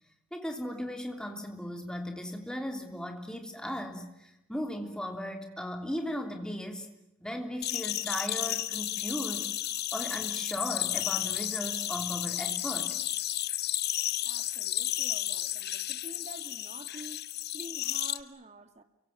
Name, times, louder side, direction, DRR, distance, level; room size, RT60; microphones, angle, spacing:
voice 1, 0.3-6.9 7.2-9.5 9.9-12.9, equal, 5° left, 3.3 m, -37 dB
sound 1, 7.6-18.2, left 13 dB, 50° left, 1.1 m, -32 dB
voice 2, 14.2-18.8, right 1 dB, 30° right, 2.2 m, -48 dB
29.5 x 24.0 x 7.4 m
head